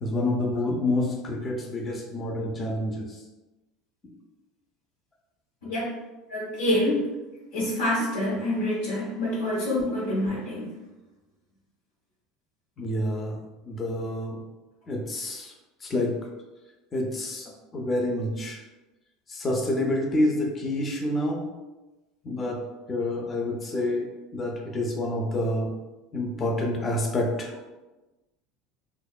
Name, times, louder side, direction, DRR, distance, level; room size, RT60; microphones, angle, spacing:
voice 1, 0.0-3.2 12.8-13.4 13.6-14.4 14.9-15.5 15.8-16.1 16.9-18.6 19.3-21.4 22.2-22.6 22.9-25.7 26.1-27.7, left 1 dB, 30° left, 1 dB, 0.5 m, -28 dB
voice 2, 6.3-7.0 7.5-10.7, left 1 dB, 90° left, -9 dB, 0.7 m, -26 dB
2.7 x 2.1 x 2.3 m, 1.1 s
supercardioid pair, 110°, 0 cm